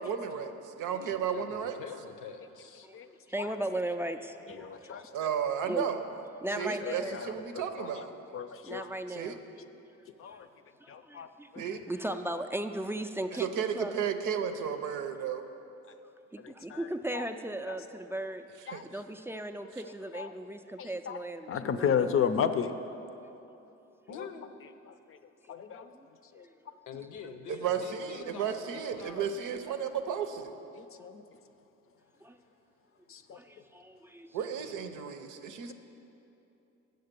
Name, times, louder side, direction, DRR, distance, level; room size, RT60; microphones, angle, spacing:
voice 1, 0.0-1.8 5.1-6.0 6.6-8.2 9.1-9.4 11.6-11.8 13.4-15.4 18.7-18.9 27.5-30.5 34.3-35.7, right 7 dB, 80° right, 8 dB, 0.7 m, -33 dB
voice 2, 0.9-2.9 8.5-8.6 24.1-24.6 26.9-29.4 30.7-30.8 34.6-34.9, left 6 dB, 85° left, 8 dB, 0.7 m, -46 dB
voice 3, 2.8-5.1 5.7-5.9 6.4-7.2 8.6-9.4 10.2-10.4 10.8-13.9 16.3-18.5 18.8-22.3 25.4-25.5 25.9-26.1 26.3-26.8 32.2-32.4 33.3-34.4 35.1-35.7, right 1 dB, 10° right, 7 dB, 0.3 m, -37 dB
voice 4, 4.5-5.1 6.6-8.0 8.3-8.9 10.2-10.5 10.9-11.3 11.5-11.6 16.4-16.9 17.1-17.2 17.7-17.8 18.7-19.0 20.1-20.3 20.8-21.2 21.5-22.7 24.1-24.3 24.9-25.2 25.5-25.9 26.3-26.4 28.2-28.3 30.7-31.2 33.1-33.4, left 7 dB, 45° left, 10 dB, 0.5 m, -34 dB
7.8 x 6.6 x 6.7 m, 2.9 s
cardioid pair, 90°, 30 cm